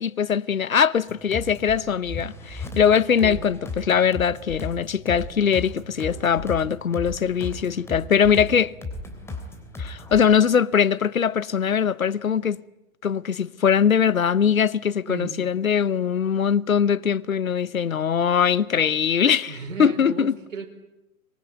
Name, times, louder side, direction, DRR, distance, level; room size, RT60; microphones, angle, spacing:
voice 1, 0.0-8.7 9.8-12.6 13.0-20.4, left 7 dB, 75° left, 0.9 m, -21 dB
sound 1, 1.1-10.3, left 3 dB, 5° left, 3.1 m, -36 dB
voice 2, 15.1-15.4 19.5-20.7, right 5 dB, 65° right, 4.9 m, -35 dB
24.5 x 22.0 x 9.2 m
figure-of-eight pair, 125°, 41 cm